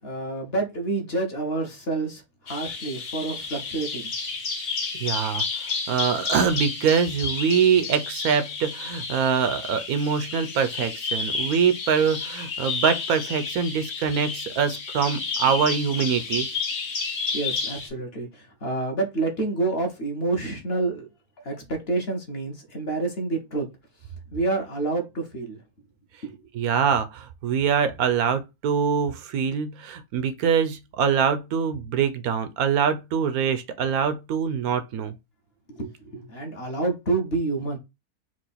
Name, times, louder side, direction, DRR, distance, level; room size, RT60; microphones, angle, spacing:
voice 1, 0.0-4.1 17.3-21.1 21.4-23.7 24.3-25.6 26.2-26.4 35.7-37.8, right 3 dB, 45° left, 1.2 m, -28 dB
Bird vocalization bird call bird song, 2.5-17.9, left 4 dB, 60° left, 1.6 m, -31 dB
voice 2, 4.9-5.4 5.9-16.5 26.5-35.2, right 7 dB, 80° right, 1.1 m, -24 dB
4.6 x 2.5 x 4.1 m
omnidirectional pair, 1.6 m